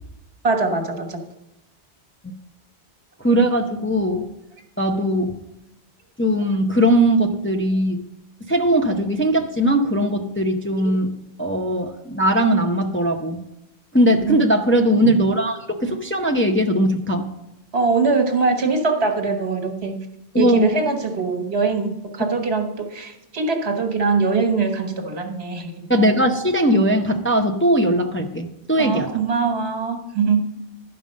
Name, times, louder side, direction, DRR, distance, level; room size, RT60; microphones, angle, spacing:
voice 1, 0.4-1.2 10.8-10.9 14.1-14.5 17.7-20.0 20.4-25.7 28.8-30.4, right 4 dB, 70° right, 4 dB, 1.6 m, -22 dB
voice 2, 3.2-4.3 4.8-5.3 6.2-8.0 8.4-11.1 11.4-13.4 13.9-17.3 20.3-20.7 25.9-29.1, right 1 dB, 15° left, 2 dB, 0.6 m, -19 dB
12.0 x 5.4 x 6.4 m, 0.93 s
omnidirectional pair, 1.1 m